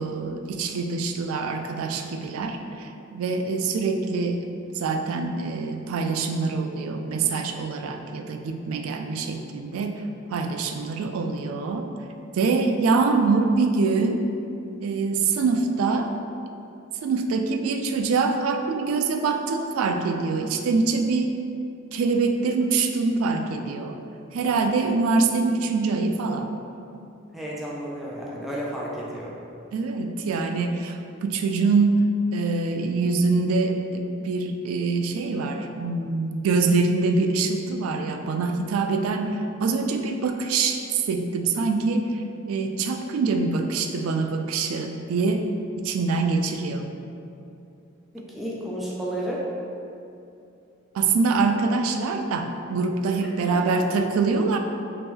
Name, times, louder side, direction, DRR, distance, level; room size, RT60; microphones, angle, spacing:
voice 1, 0.0-4.5 4.7-10.0 10.3-11.9 12.3-14.2 14.8-16.1 17.0-21.4 21.9-24.0 24.3-26.5 29.7-32.1 32.3-45.4 45.8-46.9 50.9-54.6, right 4 dB, 85° right, 5 dB, 0.3 m, -24 dB
voice 2, 27.3-29.3 48.1-49.4 53.2-53.8, right 1 dB, ahead, -6 dB, 0.4 m, -32 dB
3.0 x 2.9 x 3.5 m, 2.7 s
head